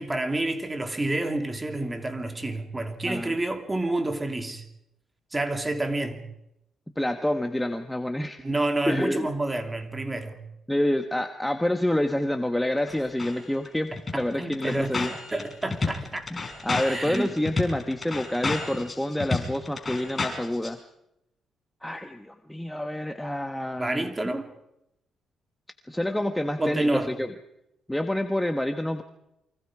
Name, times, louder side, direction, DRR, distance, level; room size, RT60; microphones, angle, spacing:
voice 1, 0.0-4.7 5.3-6.2 8.4-10.4 13.9-14.9 15.3-16.3 16.8-17.3 23.8-24.5 26.6-27.2, right 2 dB, 15° right, 2.9 m, -29 dB
voice 2, 7.0-8.4 8.9-9.3 10.7-15.1 16.3-20.8 21.8-24.1 25.9-27.3 27.9-29.0, left 1 dB, 5° left, 1.3 m, -28 dB
sound 1, 12.9-13.3 13.6-13.7 14.0-20.7, left 3 dB, 25° left, 5.4 m, -31 dB
29.0 x 24.0 x 4.9 m
cardioid pair, 90°, 0 cm